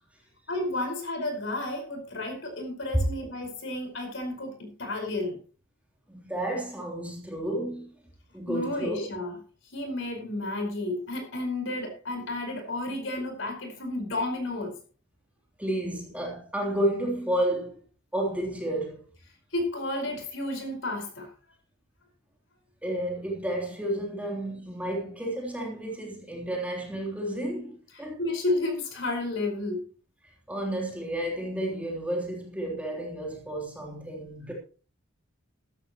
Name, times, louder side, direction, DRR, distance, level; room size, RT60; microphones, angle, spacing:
voice 1, 0.5-5.4 8.5-9.4 9.7-14.8 19.5-21.3 28.2-29.8, left 2 dB, 60° left, 4.9 m, -32 dB
voice 2, 6.1-7.9 8.3-9.1 15.6-17.8 18.1-19.1 22.8-28.2 30.5-34.5, right 1 dB, 5° right, 3.3 m, -31 dB
15.0 x 13.5 x 3.0 m
head